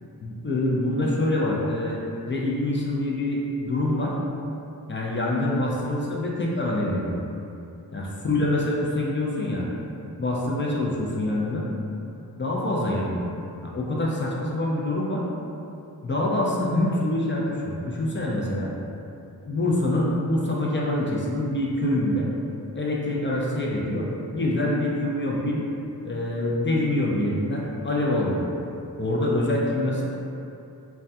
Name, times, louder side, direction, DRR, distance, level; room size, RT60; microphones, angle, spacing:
voice 1, 0.2-2.0 2.3-4.1 4.9-7.2 7.9-9.7 10.2-11.6 12.4-13.2 13.7-15.2 16.0-18.7 19.5-22.3 22.7-25.6 26.0-28.4 29.0-30.0, left 1 dB, 30° left, -4 dB, 0.4 m, -25 dB
2.2 x 2.2 x 2.6 m, 2.7 s
wide cardioid pair, 65°, 38 cm